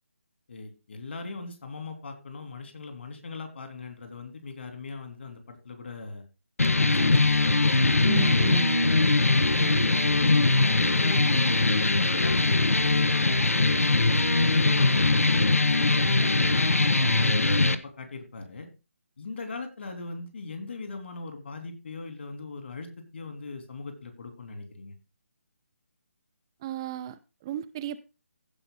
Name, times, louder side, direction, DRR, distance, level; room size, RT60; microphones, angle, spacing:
voice 1, 0.5-6.2 6.8-9.6 10.1-13.4 14.1-18.7 19.2-24.9, left 3 dB, 55° left, 3.3 m, -39 dB
sound 1, 6.6-17.7, left 2 dB, 85° left, 1.0 m, -22 dB
voice 2, 8.0-8.9 9.6-9.9 26.6-28.0, right 12 dB, 20° right, 0.4 m, -34 dB
16.0 x 5.3 x 3.9 m
figure-of-eight pair, 150°, 7 cm